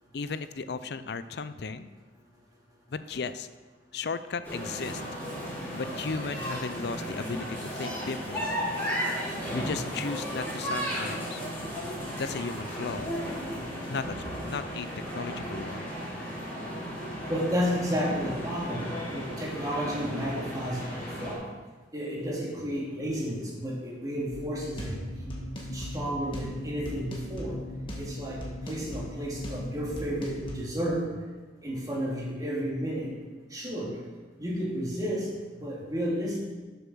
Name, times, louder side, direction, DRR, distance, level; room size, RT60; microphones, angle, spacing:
voice 1, 0.1-1.9 2.9-3.5 3.9-5.0 5.7-8.4 9.5-11.4 12.2-13.1 13.9-14.9 15.1-15.9, left 4 dB, 65° left, 13 dB, 0.5 m, -35 dB
sound 1, 4.4-21.3, equal, 15° left, 3.3 m, -35 dB
voice 2, 17.3-18.8 19.1-21.4 21.9-24.9 25.7-27.6 28.0-28.4 28.7-31.0 31.6-33.1 33.5-33.9 34.4-35.3 35.6-36.4, equal, 20° right, -5 dB, 2.6 m, -32 dB
sound 2, 24.3-30.5, equal, 30° left, 1.7 m, -38 dB
7.6 x 6.9 x 6.2 m, 1.3 s
head